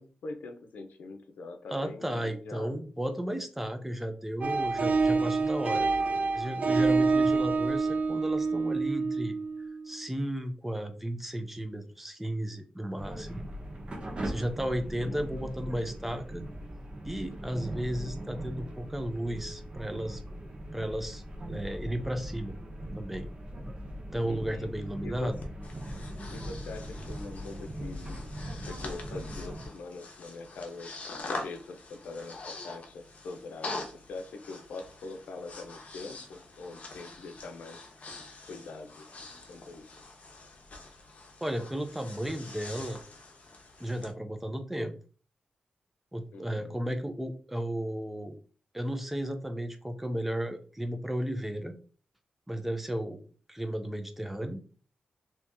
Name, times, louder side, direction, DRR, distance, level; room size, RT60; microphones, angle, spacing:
voice 1, 0.0-2.8 15.0-15.3 24.2-24.7 25.0-25.3 26.3-28.2 28.6-30.9 31.3-37.8 38.5-39.1 39.5-39.8 46.3-46.8, left 3 dB, 90° left, 6 dB, 0.6 m, -43 dB
voice 2, 1.7-5.9 6.3-9.3 9.8-13.5 14.2-16.4 17.0-20.2 20.7-21.2 21.5-22.6 23.0-23.3 24.1-25.4 41.4-43.0 43.8-44.9 46.1-48.4 48.7-51.7 52.5-53.2 53.5-54.6, equal, 5° right, 7 dB, 0.6 m, -34 dB
sound 1, 4.4-9.9, right 4 dB, 60° right, 0.4 m, -27 dB
sound 2, 13.0-29.7, equal, 40° right, 0.8 m, -40 dB
Breathing, 25.4-44.1, left 3 dB, 55° left, 0.9 m, -44 dB
2.8 x 2.8 x 3.5 m, 0.39 s
cardioid pair, 85°, 3 cm